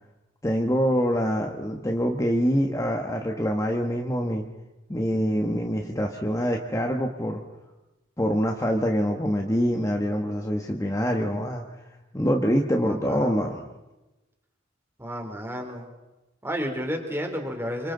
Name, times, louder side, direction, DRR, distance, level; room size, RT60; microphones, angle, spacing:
voice 1, 0.4-4.4 4.9-7.4 8.2-11.6 12.1-13.7, equal, 15° left, 2 dB, 1.4 m, -25 dB
voice 2, 12.8-13.5 15.0-15.9 16.4-17.9, equal, 10° right, 3 dB, 3.4 m, -32 dB
28.0 x 25.5 x 4.0 m, 1.0 s
head